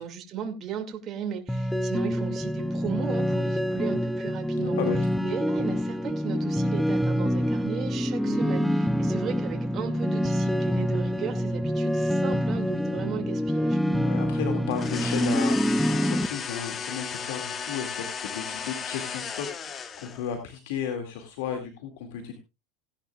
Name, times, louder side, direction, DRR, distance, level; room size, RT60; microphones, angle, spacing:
voice 1, 0.0-4.8 5.2-13.8, right 8 dB, 40° right, 4 dB, 2.4 m, -36 dB
sound 1, 1.5-16.3, equal, ahead, 0.6 m, -26 dB
voice 2, 4.5-5.0 8.2-8.6 13.8-22.4, left 8 dB, 80° left, 4 dB, 2.3 m, -34 dB
sound 2, 14.7-20.3, left 6 dB, 30° left, 1.2 m, -35 dB
17.5 x 10.5 x 2.4 m, 0.26 s
supercardioid pair, 125°, 0 cm